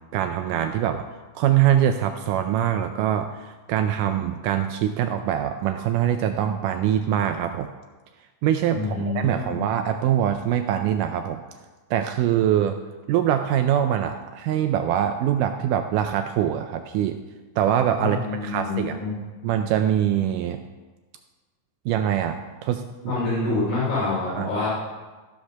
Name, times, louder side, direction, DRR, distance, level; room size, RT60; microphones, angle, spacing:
voice 1, 0.1-1.1 1.4-7.7 8.4-11.4 11.9-12.8 13.1-17.2 17.6-19.0 19.4-20.6 21.9-23.1 24.4-24.5, right 10 dB, 85° right, 7 dB, 1.9 m, -23 dB
voice 2, 8.7-9.6 18.0-19.1 23.1-24.7, left 3 dB, 80° left, -7 dB, 4.7 m, -26 dB
14.5 x 5.2 x 5.8 m, 1.2 s
omnidirectional pair, 4.2 m